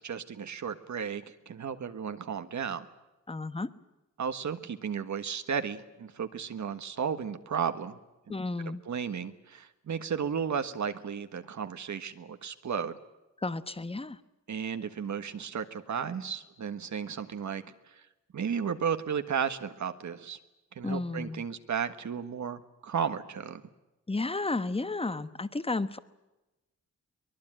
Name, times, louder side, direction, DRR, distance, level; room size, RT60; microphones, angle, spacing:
voice 1, 0.0-2.8 4.2-8.0 8.6-13.0 14.5-18.0 18.3-20.4 20.7-23.6, right 7 dB, 75° right, 9 dB, 1.5 m, -34 dB
voice 2, 3.3-3.7 8.3-8.8 13.4-14.2 20.8-21.4 24.1-26.0, left 3 dB, 20° left, 13 dB, 1.1 m, -32 dB
23.5 x 21.5 x 9.0 m, 1.0 s
wide cardioid pair, 135°, 29 cm